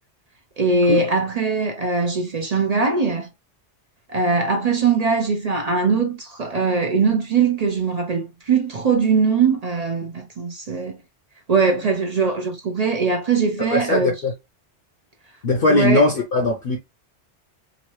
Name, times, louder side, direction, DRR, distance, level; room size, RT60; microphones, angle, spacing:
voice 1, 0.6-3.3 4.1-11.0 11.5-14.2 15.7-16.1, right 4 dB, 50° right, 0.5 m, -21 dB
voice 2, 13.7-14.3 15.4-16.8, left 2 dB, 60° left, 0.8 m, -19 dB
2.9 x 2.6 x 3.0 m
omnidirectional pair, 1.2 m